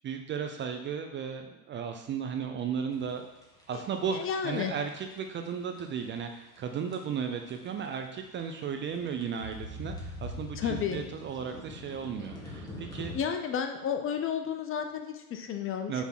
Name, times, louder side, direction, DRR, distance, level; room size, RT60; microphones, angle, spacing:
voice 1, 0.0-3.2 3.7-13.1 15.9-16.0, right 7 dB, 25° right, 5 dB, 0.5 m, -35 dB
sound 1, 2.9-13.2, left 1 dB, 10° left, 1.6 m, -44 dB
voice 2, 4.1-4.7 10.6-11.0 13.1-16.0, left 7 dB, 30° left, 6 dB, 0.7 m, -32 dB
6.1 x 3.5 x 5.8 m, 0.91 s
hypercardioid pair, 105°, 44 cm